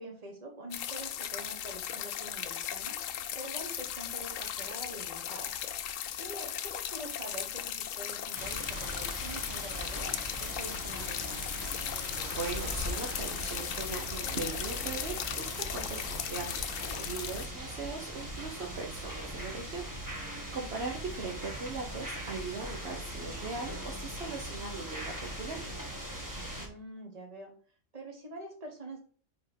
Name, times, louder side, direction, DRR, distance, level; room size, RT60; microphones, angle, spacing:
voice 1, 0.0-3.0 3.3-5.5 6.2-11.6 26.6-27.5 27.9-29.0, right 1 dB, 30° right, 1 dB, 1.5 m, -45 dB
sound 1, 0.7-17.5, left 10 dB, 85° left, 1.0 m, -37 dB
sound 2, 8.3-26.7, right 1 dB, 15° right, 1.6 m, -40 dB
sound 3, 9.5-19.8, equal, 85° right, 1.9 m, -47 dB
voice 2, 12.2-25.7, right 4 dB, 55° right, 0 dB, 1.2 m, -40 dB
5.2 x 4.4 x 5.2 m, 0.44 s
omnidirectional pair, 1.4 m